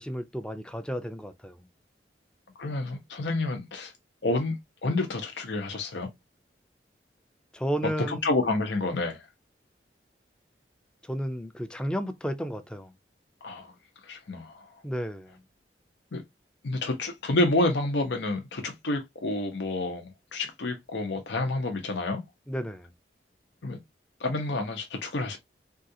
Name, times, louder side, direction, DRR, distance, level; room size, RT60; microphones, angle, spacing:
voice 1, 0.0-1.6 7.5-8.3 11.0-12.9 14.8-15.4 22.5-22.9, equal, 5° left, 0.3 m, -33 dB
voice 2, 2.6-3.9 4.2-6.1 8.1-9.3 13.4-13.7 14.0-14.7 16.1-16.2 16.6-22.2 23.6-23.8 24.2-25.4, left 2 dB, 90° left, 0.7 m, -29 dB
3.6 x 2.4 x 2.7 m
head